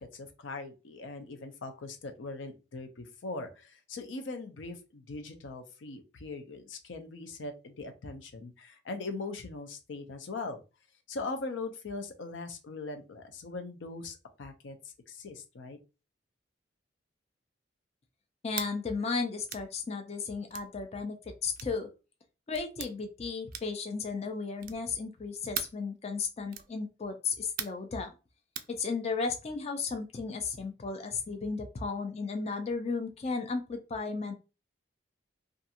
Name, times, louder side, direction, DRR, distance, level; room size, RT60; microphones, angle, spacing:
voice 1, 0.0-10.6 11.1-15.8, left 3 dB, 85° left, 6 dB, 0.5 m, -41 dB
voice 2, 18.4-21.2 21.4-21.9 22.5-28.1 28.7-34.3, left 4 dB, 35° left, 6 dB, 0.4 m, -34 dB
sound 1, 18.5-18.7 19.5-19.7 20.5-20.7 21.5-21.8 22.5-22.9 23.5-23.8 24.6-24.9 25.5-25.8 26.5-26.7 27.6-27.9 28.5-28.7, right 10 dB, 50° right, 0.3 m, -39 dB
2.5 x 2.3 x 2.7 m, 0.30 s
head